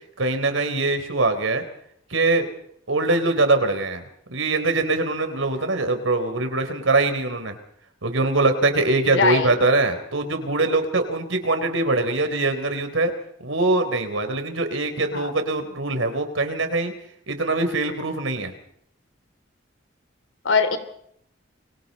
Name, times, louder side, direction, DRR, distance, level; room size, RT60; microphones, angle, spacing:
voice 1, 0.2-1.6 2.1-2.5 2.9-7.6 8.0-13.1 13.4-16.9 17.3-18.5, right 2 dB, 80° right, 8 dB, 3.9 m, -23 dB
voice 2, 9.1-9.5 15.1-15.3 20.4-20.8, left 4 dB, 70° left, 9 dB, 3.3 m, -20 dB
29.5 x 24.5 x 4.3 m, 0.70 s
head